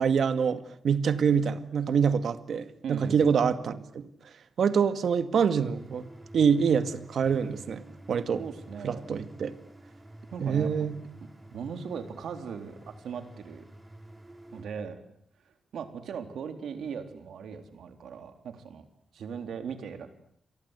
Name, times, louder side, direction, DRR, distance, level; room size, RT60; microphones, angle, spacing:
voice 1, 0.0-4.0 4.6-8.4 8.8-9.5 10.4-11.0, right 6 dB, 65° right, 2.0 m, -26 dB
voice 2, 2.8-3.4 8.4-9.0 10.3-10.9 11.5-13.6 14.5-15.0 15.5-18.8 19.1-20.1, right 6 dB, 90° right, 3.7 m, -39 dB
sound 1, 5.7-14.6, right 1 dB, 10° right, 3.5 m, -49 dB
29.0 x 24.0 x 8.3 m
wide cardioid pair, 155°, 0 cm